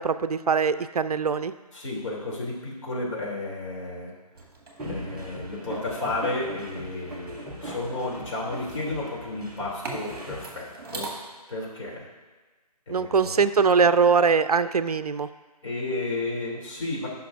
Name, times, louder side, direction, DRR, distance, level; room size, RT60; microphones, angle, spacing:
voice 1, 0.0-1.5 12.9-15.3, right 5 dB, 70° right, 13 dB, 0.4 m, -22 dB
voice 2, 1.7-4.1 4.9-11.1 11.5-12.1 12.9-13.4 15.6-17.1, left 2 dB, 50° left, -4 dB, 2.8 m, -32 dB
sound 1, 4.3-11.1, right 3 dB, 35° right, 2.0 m, -43 dB
sound 2, 4.8-10.4, equal, ahead, 0.5 m, -39 dB
16.0 x 5.9 x 2.5 m, 1.3 s
figure-of-eight pair, 160°, 20 cm